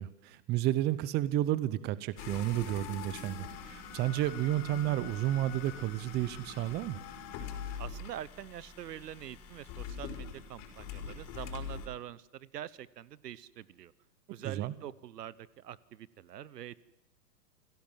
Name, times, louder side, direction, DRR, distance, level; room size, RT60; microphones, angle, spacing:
voice 1, 0.0-7.0 14.4-14.7, right 14 dB, 20° right, 18 dB, 0.8 m, -31 dB
sound 1, 2.2-11.9, left 6 dB, 40° left, 5.1 m, -43 dB
voice 2, 7.8-13.9 14.3-16.8, right 11 dB, 70° right, 21 dB, 1.1 m, -45 dB
28.5 x 17.0 x 7.4 m, 0.89 s
hypercardioid pair, 125°, 49 cm